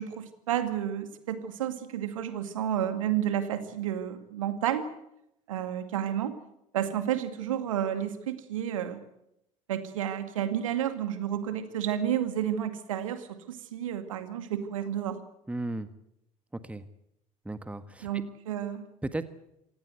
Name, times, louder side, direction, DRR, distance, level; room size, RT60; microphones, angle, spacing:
voice 1, 0.0-4.9 5.5-6.4 6.7-9.0 9.7-15.2 18.0-18.8, right 10 dB, 70° right, 10 dB, 2.2 m, -31 dB
voice 2, 15.5-15.9 16.5-16.8 17.4-18.2 19.0-19.2, right 2 dB, 5° right, 12 dB, 1.6 m, -35 dB
27.0 x 17.5 x 8.1 m, 0.81 s
figure-of-eight pair, 60°, 17 cm